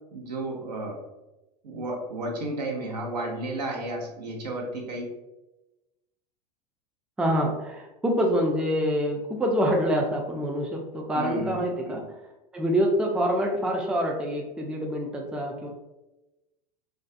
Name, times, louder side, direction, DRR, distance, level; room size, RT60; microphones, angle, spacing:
voice 1, 0.1-1.0 1.6-5.1 11.1-11.6 11.9-12.0, right 2 dB, 80° right, 0 dB, 0.6 m, -32 dB
voice 2, 7.2-12.0 12.5-15.7, equal, 5° right, 0 dB, 0.3 m, -26 dB
2.4 x 2.2 x 2.4 m, 1.0 s
hypercardioid pair, 85°, 21 cm